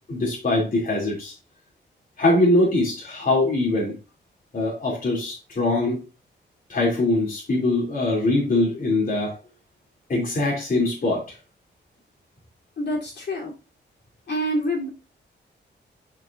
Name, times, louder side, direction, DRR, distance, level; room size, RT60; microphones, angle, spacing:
voice 1, 0.1-1.3 2.2-3.9 4.5-6.0 6.7-9.3 10.1-11.2, left 2 dB, 45° left, -3 dB, 3.1 m, -22 dB
voice 2, 12.8-13.5 14.3-14.9, equal, 65° left, -3 dB, 3.5 m, -26 dB
10.5 x 4.8 x 2.6 m, 0.30 s
cardioid pair, 80°, 19 cm